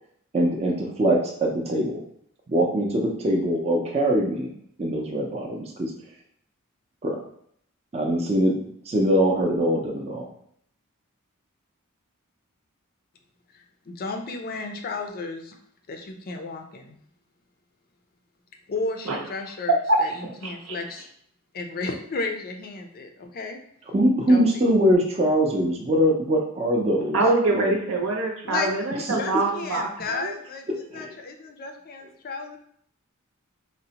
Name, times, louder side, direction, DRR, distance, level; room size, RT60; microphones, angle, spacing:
voice 1, 0.3-2.0 2.5-4.5 4.8-5.9 7.0-7.2 7.9-10.3 23.9-27.2 27.5-27.7 29.1-29.2 30.9-31.1, equal, 30° right, -1 dB, 0.5 m, -22 dB
voice 2, 13.9-15.6 15.9-17.0 18.7-21.1 21.5-23.6 24.3-24.6 28.5-28.7 29.1-32.6, left 3 dB, 45° left, 4 dB, 0.4 m, -33 dB
voice 3, 19.7-20.0 20.6-20.8 27.1-30.3, right 2 dB, 75° right, 0 dB, 0.7 m, -24 dB
3.8 x 2.1 x 2.8 m, 0.66 s
head